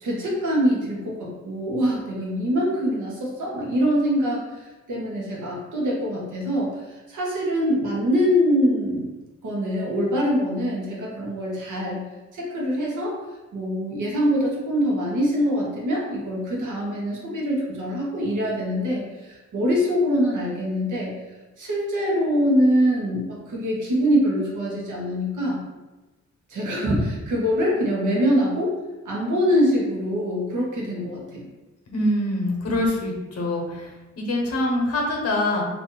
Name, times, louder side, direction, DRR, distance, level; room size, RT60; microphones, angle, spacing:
voice 1, 0.0-9.2 9.4-12.0 12.3-13.2 13.5-21.1 21.6-25.6 26.5-28.8 29.0-31.4, equal, 85° right, -3 dB, 1.0 m, -24 dB
voice 2, 31.9-33.9 34.2-35.6, left 1 dB, 55° left, 0 dB, 0.9 m, -24 dB
2.7 x 2.6 x 3.7 m, 1.1 s
wide cardioid pair, 135°, 29 cm